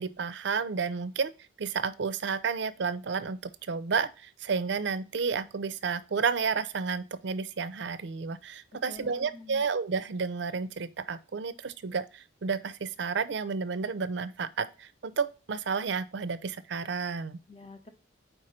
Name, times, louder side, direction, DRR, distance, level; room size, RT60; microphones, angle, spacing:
voice 1, 0.0-1.3 1.6-17.4, right 5 dB, 60° right, 0.5 m, -31 dB
voice 2, 8.7-9.7 17.5-17.9, left 3 dB, 30° left, 0.7 m, -47 dB
4.5 x 4.3 x 4.9 m
head